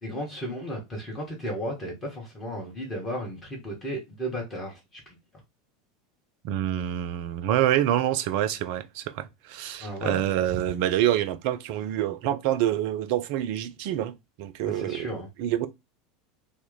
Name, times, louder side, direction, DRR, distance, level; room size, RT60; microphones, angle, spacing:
voice 1, 0.0-5.2 9.8-10.2 14.7-15.3, equal, 25° left, 1.3 m, -34 dB
voice 2, 6.4-15.7, right 12 dB, 50° right, 0.3 m, -27 dB
3.0 x 2.0 x 3.8 m
figure-of-eight pair, 80°, 0 cm